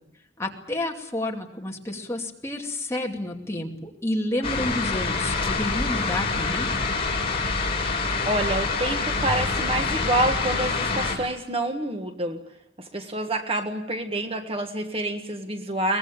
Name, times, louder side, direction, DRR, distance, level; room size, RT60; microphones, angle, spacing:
voice 1, 0.4-6.7, left 1 dB, 15° left, 0 dB, 2.5 m, -30 dB
sound 1, 4.4-11.2, left 4 dB, 30° left, 5.3 m, -26 dB
voice 2, 8.2-12.4 12.8-16.0, right 1 dB, 30° right, 5 dB, 1.6 m, -27 dB
23.0 x 20.0 x 8.7 m, 0.82 s
head